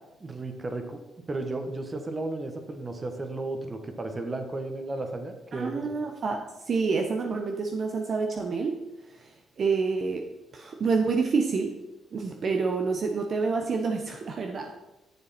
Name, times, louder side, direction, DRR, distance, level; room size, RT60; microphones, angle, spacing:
voice 1, 0.2-1.0 1.3-5.8, right 2 dB, 30° right, 5 dB, 1.4 m, -34 dB
voice 2, 5.5-8.8 9.2-9.3 9.6-10.3 10.5-11.8 12.1-14.7, right 4 dB, 50° right, 3 dB, 0.9 m, -28 dB
10.5 x 6.8 x 4.3 m, 1.0 s
cardioid pair, 90°, 0 cm